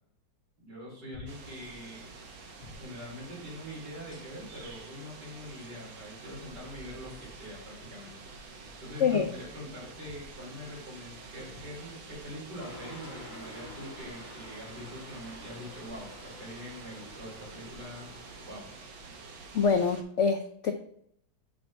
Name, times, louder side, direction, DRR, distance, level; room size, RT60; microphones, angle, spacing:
voice 1, 0.6-2.1 2.7-8.4 8.8-18.1 18.4-18.7, left 1 dB, 60° right, -5 dB, 4.1 m, -44 dB
sound 1, 1.1-1.5 2.6-2.9 4.1-4.6 5.6-5.7 7.1-7.3 10.0-10.3 11.5-11.8 13.0-13.4 14.5-14.6 16.0-16.2, left 4 dB, 40° left, 1.5 m, -52 dB
sound 2, 1.3-20.0, right 3 dB, 90° right, 1.8 m, -48 dB
sound 3, 12.6-18.6, left 1 dB, 15° right, 1.2 m, -49 dB
voice 2, 19.5-20.7, left 6 dB, 90° left, 5 dB, 0.6 m, -25 dB
6.2 x 4.3 x 6.2 m, 0.67 s
omnidirectional pair, 2.0 m